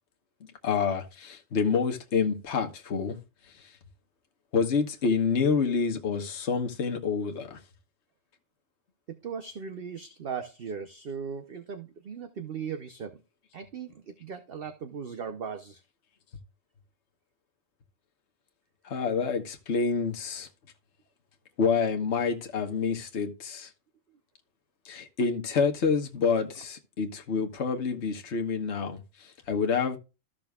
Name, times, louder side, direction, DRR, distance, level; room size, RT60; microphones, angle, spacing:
voice 1, 0.6-3.2 3.6-3.7 4.5-7.6 18.8-20.5 21.6-23.7 24.8-30.0, left 5 dB, 60° left, 1.4 m, -28 dB
voice 2, 9.1-13.2 13.5-15.8, right 6 dB, 50° right, 0.9 m, -38 dB
14.0 x 6.0 x 2.3 m
omnidirectional pair, 1.4 m